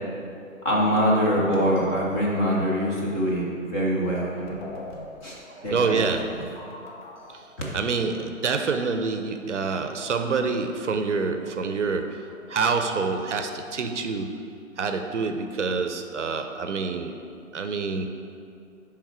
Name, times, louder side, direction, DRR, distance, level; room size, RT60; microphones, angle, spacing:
voice 1, 0.6-4.6 5.2-5.4 5.6-6.4 7.6-7.8, equal, 15° left, -5 dB, 0.8 m, -24 dB
sound 1, 1.8-2.6 4.2-4.3 4.5-7.5, left 1 dB, 35° left, 1.0 m, -41 dB
voice 2, 5.5-6.7 7.3-7.4 7.7-14.4 14.8-17.1 17.5-18.1, right 4 dB, 60° right, 7 dB, 0.7 m, -27 dB
10.0 x 3.6 x 4.7 m, 2.4 s
figure-of-eight pair, 135°, 40 cm